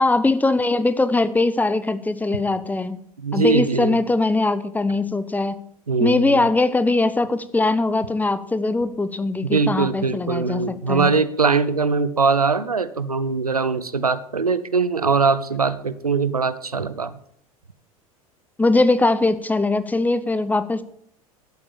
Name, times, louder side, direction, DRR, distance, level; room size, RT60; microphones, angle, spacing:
voice 1, 0.0-3.0 3.3-5.6 6.0-11.1 18.6-20.8, left 2 dB, 10° left, 13 dB, 0.9 m, -21 dB
voice 2, 3.2-4.0 5.9-6.4 9.5-17.2, right 4 dB, 85° right, 14 dB, 0.8 m, -21 dB
12.0 x 8.3 x 7.1 m, 0.66 s
figure-of-eight pair, 80°, 19 cm